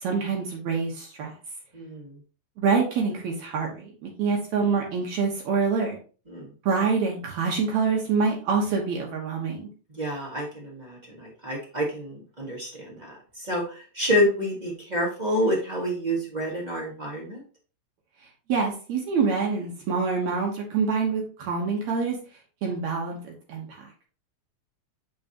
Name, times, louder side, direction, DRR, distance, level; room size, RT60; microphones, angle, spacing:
voice 1, 0.0-1.3 2.6-6.0 6.7-9.7 18.5-22.2 22.6-23.7, right 5 dB, 70° right, -1 dB, 2.3 m, -26 dB
voice 2, 1.7-2.2 6.3-6.5 9.9-17.4, equal, 35° right, -2 dB, 0.7 m, -28 dB
7.1 x 4.7 x 2.8 m, 0.37 s
omnidirectional pair, 3.5 m